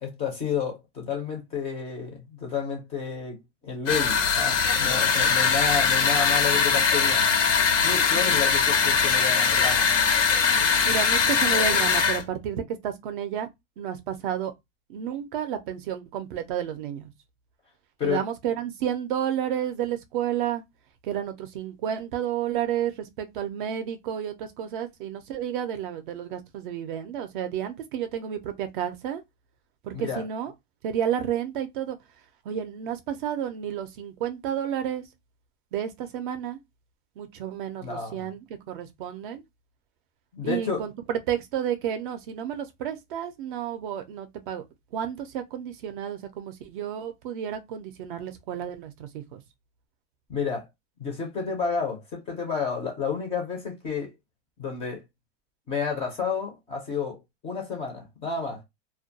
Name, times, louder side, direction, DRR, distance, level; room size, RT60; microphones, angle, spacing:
voice 1, 0.0-7.3 7.8-9.9 18.0-18.2 29.9-30.2 37.8-38.3 40.3-40.9 50.3-50.6 51.0-54.1 54.6-55.0 55.7-57.2 57.4-58.6, left 6 dB, 15° left, 0.4 m, -31 dB
sound 1, 3.9-12.2, left 6 dB, 90° left, 0.9 m, -21 dB
voice 2, 8.1-8.5 10.8-13.5 13.8-14.5 14.9-17.1 18.0-20.6 21.0-29.2 29.8-30.5 30.8-32.0 32.5-35.0 35.7-36.6 37.2-39.4 40.4-44.6 44.9-49.4, right 9 dB, 45° right, 0.4 m, -31 dB
2.2 x 2.1 x 2.6 m
supercardioid pair, 150°, 36 cm